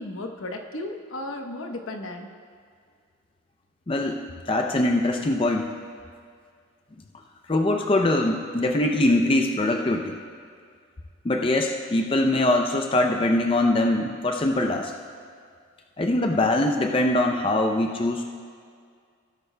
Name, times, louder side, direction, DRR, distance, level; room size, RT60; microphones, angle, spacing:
voice 1, 0.0-2.3 5.1-5.4, left 1 dB, 80° left, 3 dB, 1.0 m, -35 dB
voice 2, 3.9-4.2 4.5-5.7 7.5-10.2 11.2-14.9 16.0-18.3, left 1 dB, 25° left, 3 dB, 0.4 m, -22 dB
17.5 x 11.5 x 2.2 m, 2.1 s
head